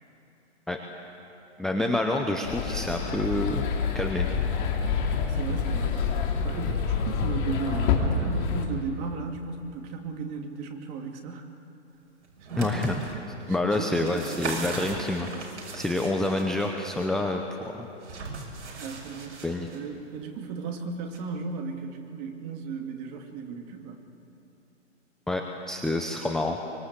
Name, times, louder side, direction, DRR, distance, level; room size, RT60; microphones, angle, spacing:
voice 1, 1.6-3.7 3.9-4.3 12.6-13.0 13.5-15.3 15.7-17.9 19.4-19.7 25.3-26.6, left 2 dB, ahead, 2 dB, 0.6 m, -28 dB
sound 1, 2.4-8.7, left 5 dB, 40° left, 3.4 m, -27 dB
voice 2, 5.3-6.0 6.4-11.5 12.5-12.6 13.5-14.7 18.8-19.4 19.7-24.0, right 5 dB, 30° right, 3 dB, 2.5 m, -36 dB
sound 2, 12.2-13.1 13.7-16.7 18.0-19.8 21.1-21.2, right 3 dB, 70° right, 6.4 m, -38 dB
24.5 x 23.0 x 8.2 m, 3.0 s
hypercardioid pair, 145°, 37 cm